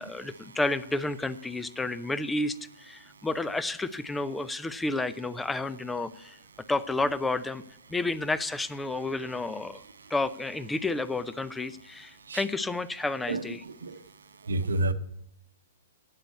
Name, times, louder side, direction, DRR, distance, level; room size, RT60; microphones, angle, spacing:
voice 1, 0.0-6.4 6.7-7.6 7.9-9.8 10.1-13.6, left 2 dB, 10° left, 0.6 m, -31 dB
voice 2, 13.3-14.0 14.4-14.9, right 2 dB, 80° right, 0.9 m, -30 dB
8.7 x 8.1 x 8.4 m
hypercardioid pair, 115°, 0 cm